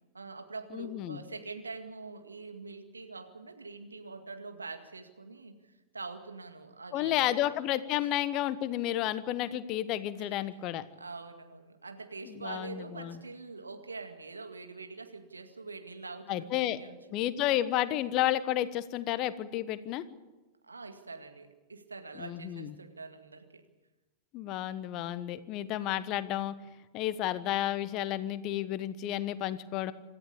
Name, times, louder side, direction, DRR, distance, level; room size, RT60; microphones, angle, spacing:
voice 1, 0.1-7.6 8.0-8.1 10.2-10.4 10.9-17.3 20.6-23.6, right 3 dB, 80° right, 6 dB, 2.0 m, -44 dB
voice 2, 0.7-1.2 6.9-10.8 12.3-13.2 16.3-16.8 17.1-20.1 22.2-22.7 24.3-26.5 26.9-29.9, left 13 dB, 40° left, 15 dB, 1.2 m, -31 dB
27.0 x 13.5 x 8.5 m, 1.2 s
figure-of-eight pair, 90°, 0 cm